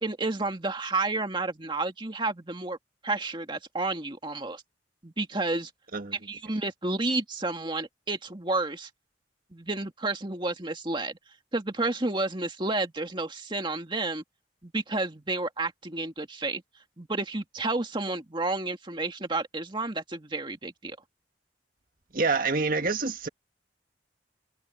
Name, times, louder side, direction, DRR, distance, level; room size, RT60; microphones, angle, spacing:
voice 1, 0.0-2.8 3.0-4.6 5.0-5.7 6.3-8.9 9.5-11.2 11.5-14.2 14.6-16.6 17.0-21.0, right 2 dB, 25° right, 2.1 m, -31 dB
voice 2, 22.1-23.3, right 4 dB, 50° right, 1.8 m, -27 dB
head